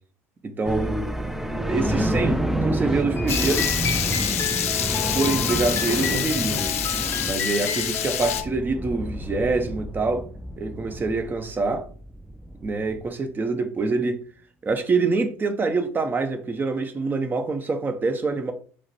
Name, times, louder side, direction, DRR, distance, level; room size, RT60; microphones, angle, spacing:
voice 1, 0.4-1.0 1.7-3.7 4.9-6.7 7.2-10.3 10.6-11.9 12.6-14.2 14.6-18.5, right 3 dB, 25° right, 0.9 m, -25 dB
sound 1, 0.6-13.1, right 1 dB, 5° right, 0.4 m, -29 dB
sound 2, 3.2-8.5, left 5 dB, 35° left, 0.7 m, -32 dB
Water tap faucet / Liquid, 3.3-8.4, left 10 dB, 85° left, 0.5 m, -27 dB
4.7 x 2.1 x 4.5 m
hypercardioid pair, 75°, 7 cm